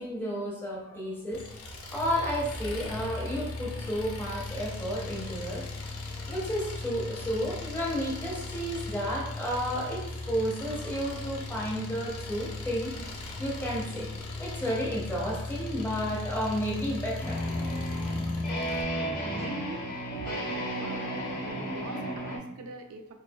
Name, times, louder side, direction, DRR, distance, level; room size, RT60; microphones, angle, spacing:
voice 1, 0.0-1.4 1.9-5.6 6.3-12.9 13.4-14.1 14.4-17.4, equal, 10° left, -3 dB, 0.6 m, -32 dB
Engine, 1.3-18.8, left 2 dB, 85° left, 0.6 m, -38 dB
sound 1, 17.2-22.4, equal, 40° left, 0.9 m, -33 dB
voice 2, 19.3-19.9 20.2-21.1 21.4-23.1, right 2 dB, 70° right, 4 dB, 0.4 m, -43 dB
4.5 x 2.3 x 2.2 m, 0.87 s
head